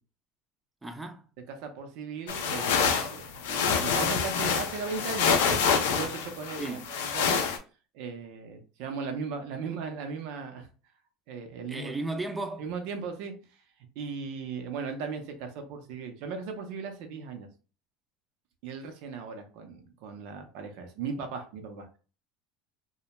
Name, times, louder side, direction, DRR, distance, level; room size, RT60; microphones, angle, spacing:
voice 1, 0.8-1.2 6.6-6.9 11.7-12.6, right 2 dB, 15° right, 0.4 m, -35 dB
voice 2, 1.5-5.6 5.9-7.4 7.9-10.7 11.3-11.9 12.6-13.3 14.0-17.5 18.6-22.0, right 5 dB, 70° right, 0.6 m, -37 dB
sound 1, 2.3-7.6, left 6 dB, 85° left, 0.4 m, -27 dB
2.2 x 2.1 x 2.8 m
supercardioid pair, 105°, 0 cm